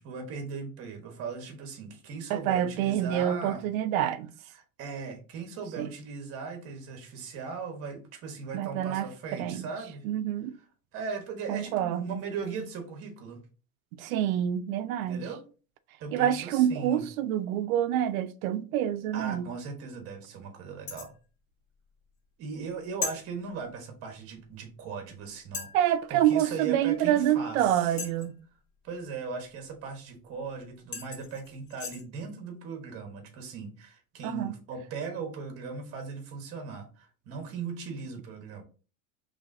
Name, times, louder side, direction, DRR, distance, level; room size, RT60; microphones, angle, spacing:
voice 1, 0.0-3.6 4.5-10.1 10.9-13.4 15.0-15.4 16.0-17.0 19.1-21.1 22.4-28.0 28.8-38.6, right 5 dB, 35° right, 1.2 m, -38 dB
voice 2, 2.3-4.3 5.8-5.9 8.5-9.1 9.4-9.7 10.0-10.6 11.5-12.2 14.0-15.2 16.1-19.4 25.7-28.3 34.2-34.5, right 11 dB, 80° right, 0.6 m, -27 dB
sound 1, 20.9-21.2 23.0-23.2 24.6-24.7 25.5-25.8 28.0-28.4 30.4-30.5 30.9-32.0, left 5 dB, 65° left, 1.7 m, -37 dB
4.6 x 3.3 x 2.6 m
supercardioid pair, 160°, 42 cm